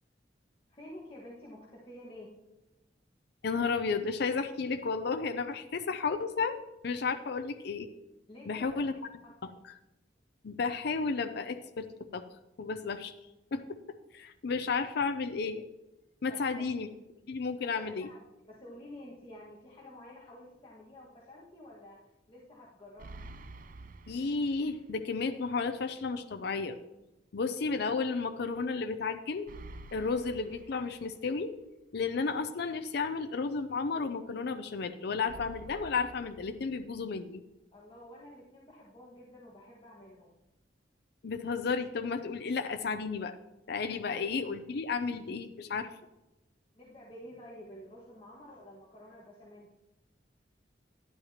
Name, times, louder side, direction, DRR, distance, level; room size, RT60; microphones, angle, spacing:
voice 1, 0.7-2.3 8.3-9.1 16.3-16.7 17.6-22.0 22.3-23.2 37.7-40.3 46.7-49.7, left 1 dB, 30° left, -5 dB, 1.6 m, -50 dB
voice 2, 3.4-6.6 6.8-7.9 8.5-8.9 9.4-9.5 10.4-11.9 12.1-12.2 12.6-13.1 13.5-13.6 14.1-15.6 16.2-16.9 17.3-18.1 24.1-26.8 27.3-29.5 29.9-31.5 31.9-37.4 41.2-43.4 43.7-45.9, left 4 dB, 60° left, 8 dB, 0.5 m, -32 dB
sound 1, 23.0-25.0 25.3-25.4 29.5-31.5 35.3-37.3, right 2 dB, 50° right, 0.6 m, -49 dB
11.5 x 10.5 x 2.9 m, 1.0 s
head